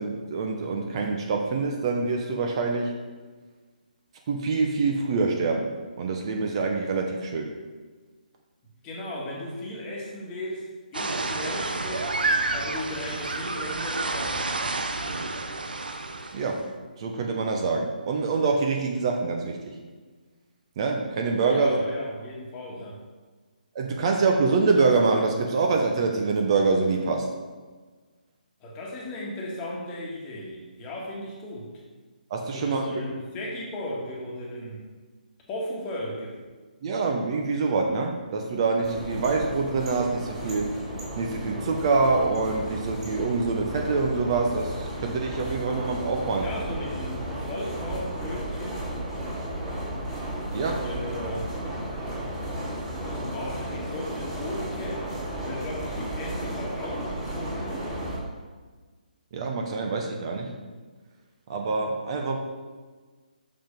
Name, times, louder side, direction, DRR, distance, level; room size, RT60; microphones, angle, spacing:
voice 1, 0.0-2.9 4.3-5.7 6.0-7.5 16.3-16.6 17.0-19.6 20.8-21.8 23.7-27.3 32.3-33.0 36.8-40.7 41.2-46.5 50.5-50.8 59.3-60.5 61.5-62.4, right 4 dB, 40° right, 2 dB, 0.8 m, -25 dB
voice 2, 8.8-12.2 12.5-14.4 21.4-23.0 28.6-31.7 32.5-34.8 35.5-36.4 46.4-48.9 50.5-51.5 53.0-55.1 55.5-57.8, left 1 dB, 20° left, -3 dB, 1.5 m, -36 dB
sound 1, 10.9-16.6, right 3 dB, 80° right, 0.7 m, -29 dB
sound 2, 38.8-58.2, right 1 dB, 10° right, 2.2 m, -34 dB
6.0 x 5.1 x 5.2 m, 1.4 s
hypercardioid pair, 150°, 5 cm